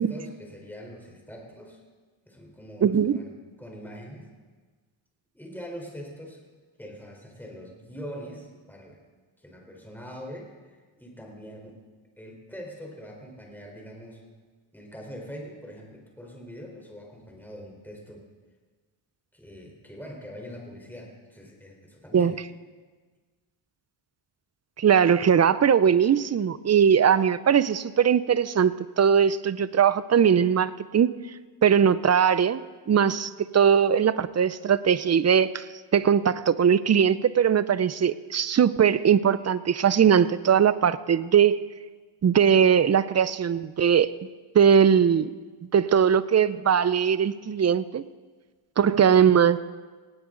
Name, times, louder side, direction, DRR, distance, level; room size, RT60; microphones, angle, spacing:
voice 1, 0.0-1.8 2.3-4.3 5.3-6.4 6.8-9.0 9.4-11.7 12.2-14.2 14.7-18.3 19.3-22.4, equal, 5° left, 0 dB, 4.1 m, -43 dB
voice 2, 2.8-3.2 22.1-22.3 24.8-31.1 31.6-35.6 35.9-41.6 42.2-44.1 44.5-45.3 45.7-48.0 48.8-49.6, right 8 dB, 35° right, 16 dB, 0.6 m, -20 dB
18.5 x 17.5 x 3.9 m, 1.4 s
cardioid pair, 105°, 49 cm